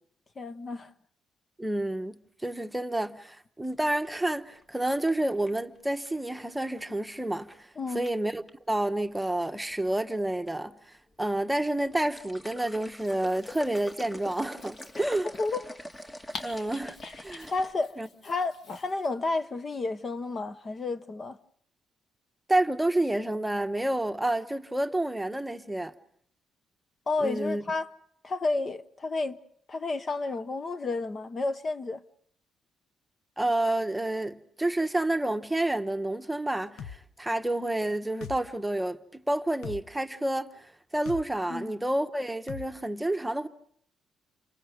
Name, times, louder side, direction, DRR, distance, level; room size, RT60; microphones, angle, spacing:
voice 1, 0.4-0.9 7.8-8.1 15.0-15.1 15.4-15.7 17.5-18.0 18.2-21.4 27.1-27.9 28.2-29.4 29.7-32.0 41.5-41.7, left 3 dB, 35° left, 0.9 m, -31 dB
voice 2, 1.6-7.7 7.9-10.8 11.2-15.3 16.4-17.5 18.0-18.1 22.5-25.9 27.2-27.6 33.4-43.5, right 1 dB, 10° right, 1.1 m, -29 dB
sound 1, 3.6-5.8 7.3-7.6 8.0-8.5 9.4-10.0 10.3-10.5 10.9-11.0 11.7-17.7, left 1 dB, 20° left, 1.7 m, -44 dB
Dog, 12.9-19.1, left 3 dB, 60° left, 2.5 m, -47 dB
sound 2, 36.8-37.0 38.2-38.4 39.6-39.8 41.1-41.2 42.5-42.7, left 7 dB, 80° left, 1.0 m, -39 dB
29.5 x 25.5 x 5.2 m
cardioid pair, 90°, 0 cm